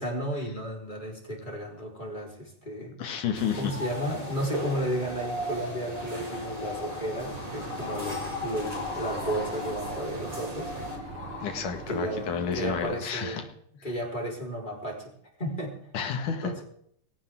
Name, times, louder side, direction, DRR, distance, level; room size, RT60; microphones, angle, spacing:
voice 1, 0.0-2.9 3.6-10.7 11.9-13.5 13.8-15.1 15.4-15.8 16.4-16.6, right 1 dB, 15° left, -1 dB, 4.7 m, -33 dB
voice 2, 3.0-3.6 11.0-11.1 11.4-13.5 15.9-16.6, left 7 dB, 85° left, 6 dB, 3.4 m, -31 dB
sound 1, 3.3-13.0, left 2 dB, 35° left, 2.7 m, -39 dB
sound 2, 3.3-11.0, equal, 10° right, 3.5 m, -40 dB
Boat Water vehicle / Engine, 7.2-12.8, right 5 dB, 55° right, 2.0 m, -43 dB
21.5 x 17.0 x 3.8 m, 0.65 s
omnidirectional pair, 3.5 m